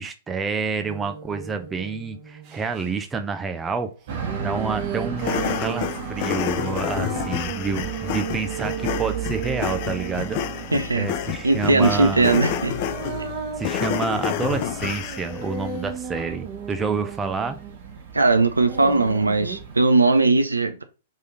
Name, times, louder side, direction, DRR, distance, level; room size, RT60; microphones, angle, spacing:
voice 1, 0.0-3.9 4.4-10.4 11.0-12.3 13.6-17.6, right 4 dB, 15° right, 0.6 m, -28 dB
sound 1, 0.8-2.9 4.1-10.8 11.6-18.0 18.7-19.6, right 7 dB, 40° right, 1.0 m, -35 dB
sound 2, 4.1-19.9, right 7 dB, 55° right, 1.4 m, -36 dB
sound 3, 5.2-15.4, left 11 dB, 45° left, 0.4 m, -29 dB
voice 2, 10.7-11.1 11.4-12.7 18.1-20.8, right 3 dB, 90° right, 0.6 m, -19 dB
3.8 x 3.2 x 3.8 m
figure-of-eight pair, 110°, 0 cm